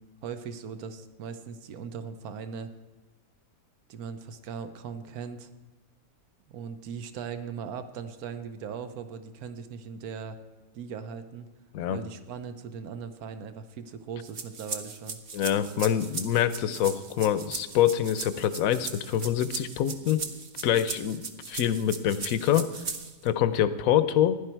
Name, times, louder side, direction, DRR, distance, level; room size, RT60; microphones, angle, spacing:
voice 1, 0.0-2.7 3.9-5.5 6.5-10.4 10.7-11.5 11.9-15.2, right 6 dB, 80° right, 10 dB, 1.3 m, -39 dB
sound 1, 14.2-23.3, right 5 dB, 45° right, 1.0 m, -38 dB
voice 2, 15.3-20.2 20.6-22.7 23.2-24.4, left 10 dB, 70° left, 13 dB, 1.1 m, -25 dB
15.5 x 11.0 x 4.5 m, 1.2 s
omnidirectional pair, 1.6 m